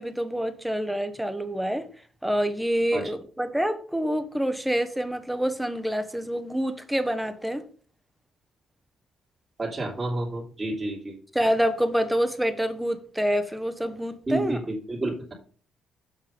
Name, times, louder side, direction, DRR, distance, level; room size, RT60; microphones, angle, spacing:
voice 1, 0.0-1.9 2.2-7.6 11.3-14.6, equal, 5° right, 1.1 m, -27 dB
voice 2, 9.6-11.2 14.3-15.3, right 2 dB, 25° right, 2.9 m, -30 dB
7.5 x 5.5 x 5.4 m
cardioid pair, 90°, 0 cm